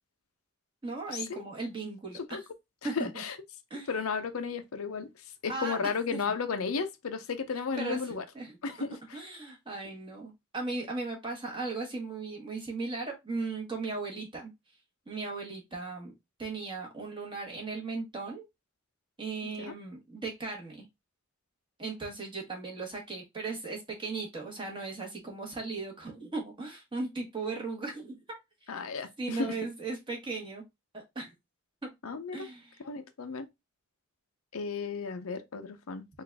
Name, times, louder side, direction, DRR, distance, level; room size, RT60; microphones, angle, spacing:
voice 1, 0.8-2.2 2.8-3.2 3.7-3.9 5.5-5.8 6.1-6.2 7.8-8.5 9.1-14.5 15.1-16.1 16.4-18.5 19.2-20.9 21.8-28.4 29.2-30.6 30.9-31.3 32.3-32.8, right 3 dB, 25° right, 1.4 m, -37 dB
voice 2, 2.8-3.4 3.9-5.1 5.4-8.2 8.6-8.9 19.4-19.7 28.7-29.5 32.0-32.5 32.8-33.5 34.5-36.1, left 5 dB, 80° left, 0.6 m, -34 dB
3.9 x 2.5 x 3.4 m
head